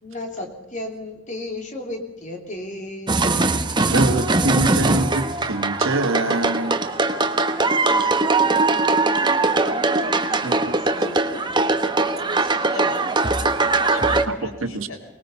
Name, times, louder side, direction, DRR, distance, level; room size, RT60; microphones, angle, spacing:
voice 1, 0.0-3.2 7.6-8.0 8.3-8.6 9.2-11.4, left 1 dB, 40° left, 3.3 m, -35 dB
sound 1, 3.1-14.3, right 3 dB, 20° right, 1.1 m, -21 dB
voice 2, 3.9-6.8 10.4-10.7 14.2-14.9, right 2 dB, 75° right, 1.7 m, -24 dB
voice 3, 12.3-13.0 13.4-15.0, left 2 dB, 85° left, 3.9 m, -38 dB
24.0 x 20.5 x 5.6 m
head